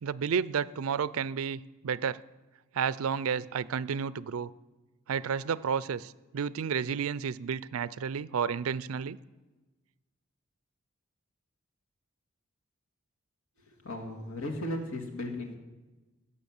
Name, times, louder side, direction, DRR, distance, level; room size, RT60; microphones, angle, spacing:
voice 1, 0.0-2.2 2.7-4.5 5.1-9.2, right 7 dB, 80° right, 19 dB, 0.4 m, -31 dB
voice 2, 13.7-15.6, left 1 dB, 85° left, 2 dB, 2.1 m, -36 dB
17.0 x 6.7 x 7.2 m, 1.2 s
head